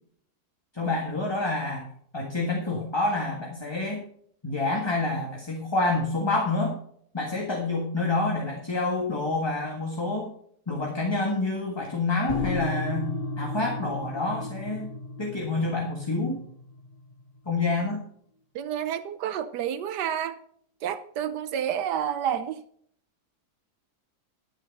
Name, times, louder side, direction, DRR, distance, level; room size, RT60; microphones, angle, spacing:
voice 1, 0.7-1.9 2.1-4.1 4.4-6.8 7.1-10.3 10.7-13.1 13.4-14.9 15.2-16.4 17.4-18.0, left 2 dB, 15° left, -1 dB, 1.6 m, -28 dB
sound 1, 12.3-17.6, left 2 dB, 65° left, 2.9 m, -34 dB
voice 2, 18.5-20.4 20.8-22.6, right 9 dB, 80° right, 11 dB, 1.3 m, -29 dB
11.5 x 7.5 x 5.4 m, 0.62 s
omnidirectional pair, 1.8 m